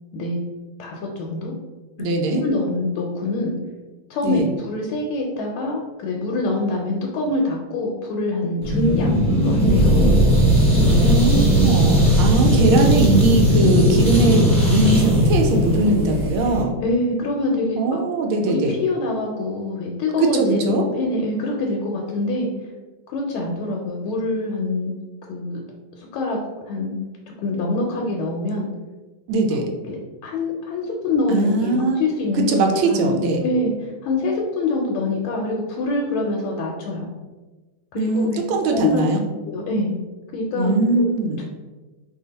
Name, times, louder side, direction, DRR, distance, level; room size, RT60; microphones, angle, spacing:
voice 1, 0.8-1.5 2.3-3.5 4.1-10.1 16.8-18.0 18.4-22.5 23.1-24.9 25.3-25.6 26.0-26.4 26.7-27.0 27.4-28.7 29.9-30.0 30.2-32.6 32.8-37.1 37.9-38.4 38.7-39.1 39.5-39.9 40.3-41.0, left 2 dB, 80° left, -1 dB, 1.4 m, -25 dB
voice 2, 2.0-2.4 4.2-4.5 11.0-16.8 17.7-18.8 20.2-20.8 29.3-29.7 31.3-32.0 32.3-33.4 38.0-39.2 40.5-41.4, right 2 dB, 80° right, 2 dB, 1.4 m, -20 dB
sound 1, 8.6-16.6, equal, 5° left, 0.7 m, -17 dB
3.3 x 2.4 x 3.9 m, 1.2 s
omnidirectional pair, 2.3 m